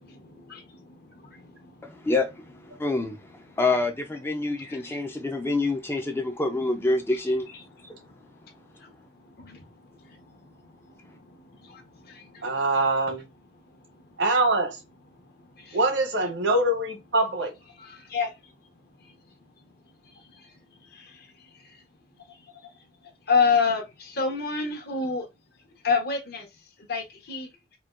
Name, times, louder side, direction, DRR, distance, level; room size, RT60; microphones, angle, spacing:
voice 1, 0.0-2.1 2.7-3.6 4.4-6.4 6.8-7.0 7.5-9.6 10.1-12.6 13.5-14.2 15.1-15.8 17.7-21.8 22.2-25.3 25.6-27.8, left 5 dB, 55° left, 0.9 m, -33 dB
voice 2, 1.8-2.3 2.8-3.2 3.6-7.5, left 2 dB, 15° left, 0.3 m, -26 dB
voice 3, 12.4-13.2 14.2-14.8 15.7-17.5, right 2 dB, 75° right, 0.8 m, -24 dB
4.3 x 2.2 x 2.4 m
head